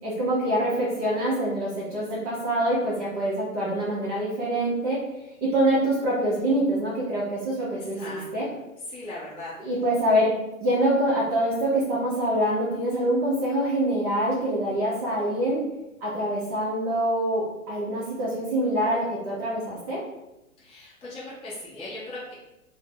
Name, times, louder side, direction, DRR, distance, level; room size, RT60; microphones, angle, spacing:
voice 1, 0.0-5.0 5.4-8.5 9.6-10.3 10.6-15.6 16.0-20.0, right 1 dB, 25° right, -7 dB, 0.6 m, -25 dB
voice 2, 8.9-9.5 20.6-22.3, left 2 dB, 15° left, -9 dB, 0.7 m, -38 dB
2.6 x 2.0 x 3.6 m, 0.95 s
hypercardioid pair, 120°, 43 cm